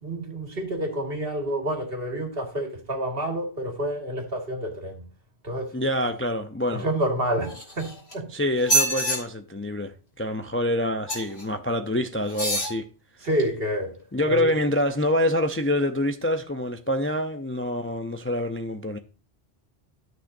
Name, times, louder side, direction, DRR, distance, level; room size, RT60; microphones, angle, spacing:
voice 1, 0.0-5.0 5.4-5.7 6.7-8.3 13.2-13.9 14.3-14.6, right 1 dB, 65° right, 2.3 m, -28 dB
voice 2, 5.7-6.9 8.3-12.9 14.1-19.0, left 1 dB, 15° left, 0.5 m, -26 dB
sound 1, 7.4-8.1 8.6-9.2 11.1-11.4 12.3-12.7 13.4-13.5, right 1 dB, 75° left, 2.9 m, -25 dB
13.0 x 6.2 x 2.6 m
omnidirectional pair, 1.1 m